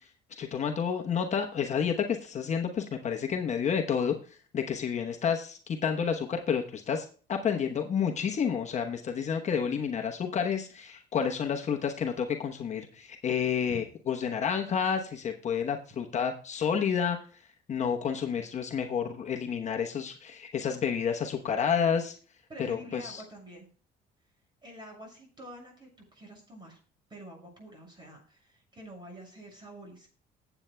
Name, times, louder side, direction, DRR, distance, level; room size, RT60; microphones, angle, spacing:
voice 1, 0.4-4.1 4.5-17.2 17.7-22.1 22.7-23.2, left 7 dB, 45° left, 3 dB, 1.0 m, -30 dB
voice 2, 22.5-23.7 24.6-26.8 27.1-30.1, right 1 dB, 25° right, 0 dB, 6.6 m, -47 dB
20.0 x 8.1 x 2.2 m, 0.40 s
cardioid pair, 110°, 17 cm